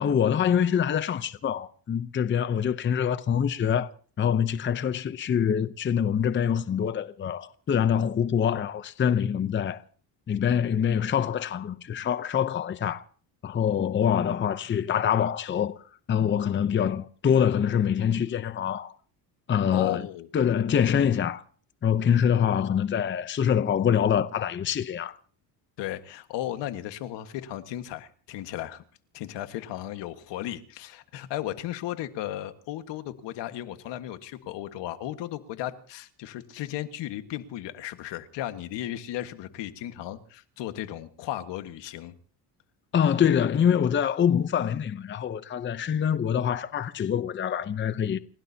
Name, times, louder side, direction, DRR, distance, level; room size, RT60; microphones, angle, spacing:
voice 1, 0.0-3.9 4.2-9.8 10.3-13.0 13.4-15.8 16.1-18.9 19.5-20.0 20.3-21.4 21.8-25.2 42.9-48.2, left 8 dB, 25° left, 0.7 m, -25 dB
voice 2, 19.7-20.3 25.8-28.8 29.1-42.1, left 13 dB, 75° left, 1.6 m, -35 dB
29.5 x 16.5 x 2.8 m
cardioid pair, 125°, 43 cm